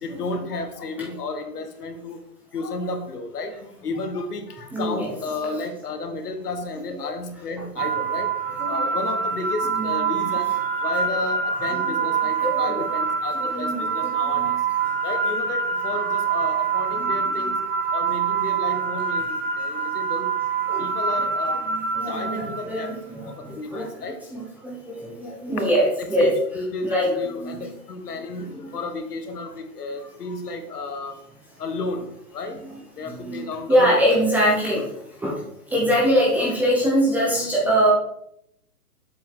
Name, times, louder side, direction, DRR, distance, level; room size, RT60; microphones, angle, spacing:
voice 1, 0.0-2.2 2.5-8.3 8.7-10.5 10.8-14.5 15.0-17.6 17.9-20.3 20.8-21.6 22.1-22.9 23.4-24.2 26.0-28.5 28.7-31.2 31.6-32.6 33.0-34.0 34.7-34.8 36.2-36.3, left 3 dB, 75° left, 7 dB, 1.6 m, -32 dB
voice 2, 4.7-5.1 7.0-7.1 8.6-8.9 9.6-10.0 11.6-12.9 13.3-14.6 17.0-17.5 20.7-20.9 21.7-26.3 26.8-27.7 28.4-28.7 32.5-34.8 35.2-35.3 35.7-37.9, equal, 5° right, -5 dB, 0.7 m, -24 dB
sound 1, 7.8-22.9, right 5 dB, 40° right, 2.6 m, -25 dB
7.6 x 6.9 x 3.7 m, 0.76 s
hypercardioid pair, 150°, 47 cm